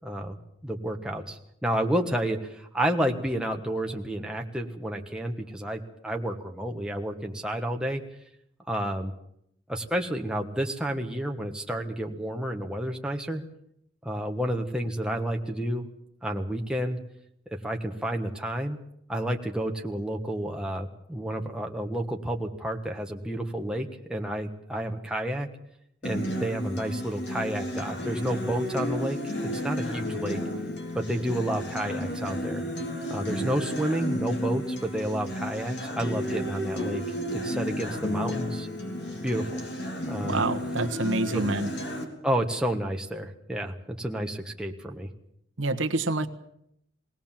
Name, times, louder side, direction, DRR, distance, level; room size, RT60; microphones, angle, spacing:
voice 1, 0.0-8.0 8.7-9.1 9.7-13.4 14.0-15.9 16.2-17.0 17.6-18.8 19.1-25.5 26.0-30.4 30.9-32.6 33.1-37.0 37.3-38.7 39.2-39.6 40.1-40.4 41.3-41.5 42.2-45.1, right 1 dB, 5° right, 2 dB, 1.5 m, -30 dB
Acoustic guitar, 26.0-42.0, equal, 60° left, 3.7 m, -32 dB
voice 2, 40.2-41.7 45.6-46.3, right 2 dB, 85° right, 7 dB, 1.3 m, -27 dB
21.5 x 17.5 x 7.4 m, 0.74 s
head